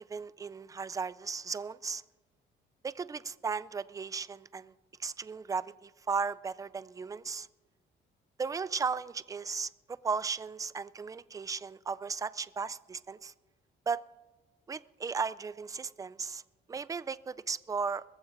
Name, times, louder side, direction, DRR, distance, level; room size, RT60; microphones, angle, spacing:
voice 1, 0.0-2.0 2.8-4.7 5.0-7.5 8.4-13.3 13.9-14.0 14.7-16.4 16.7-18.0, right 5 dB, 15° right, 17 dB, 0.3 m, -36 dB
22.0 x 14.5 x 2.6 m, 1.2 s
cardioid pair, 90°, 20 cm